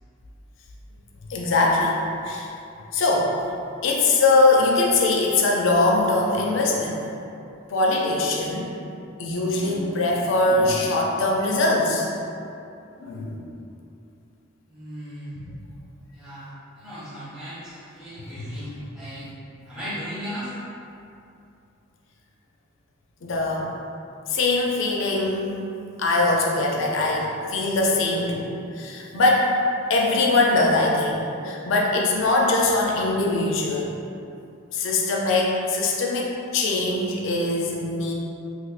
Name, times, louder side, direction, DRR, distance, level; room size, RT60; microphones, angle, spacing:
voice 1, 1.3-2.0 2.2-2.5 2.9-3.3 3.8-7.0 7.7-8.7 9.2-12.2 13.0-13.4 18.4-18.6 23.2-23.7 24.3-25.5 26.0-28.5 28.7-29.5 29.9-34.0 34.7-38.1, left 2 dB, 60° left, -2 dB, 0.4 m, -22 dB
voice 2, 14.7-15.4 16.1-19.3 19.6-20.5, equal, 5° right, -12 dB, 0.6 m, -37 dB
3.3 x 3.1 x 2.4 m, 2.7 s
head